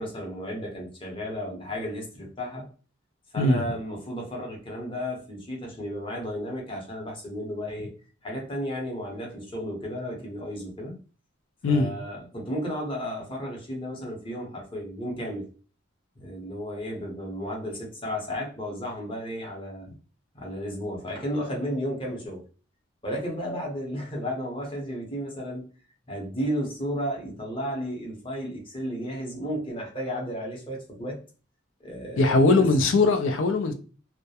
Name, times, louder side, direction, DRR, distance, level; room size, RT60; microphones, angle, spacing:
voice 1, 0.0-2.7 3.3-7.9 8.2-11.0 11.7-15.4 16.2-19.9 20.3-22.4 23.0-25.7 26.1-31.2 31.8-32.4, equal, 25° left, 0.7 m, -33 dB
voice 2, 32.2-33.7, left 2 dB, 70° left, 0.4 m, -20 dB
2.3 x 2.1 x 2.7 m
head